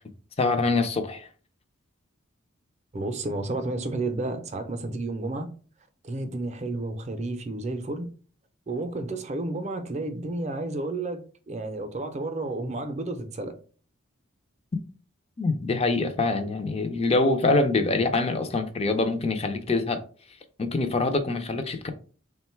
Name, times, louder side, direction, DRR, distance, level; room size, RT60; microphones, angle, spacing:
voice 1, 0.4-1.3 15.4-20.0 20.6-21.9, left 3 dB, 30° left, 0.4 m, -24 dB
voice 2, 2.9-5.5 6.0-8.0 8.7-13.5, right 2 dB, 30° right, 0.5 m, -31 dB
3.7 x 2.2 x 4.3 m
head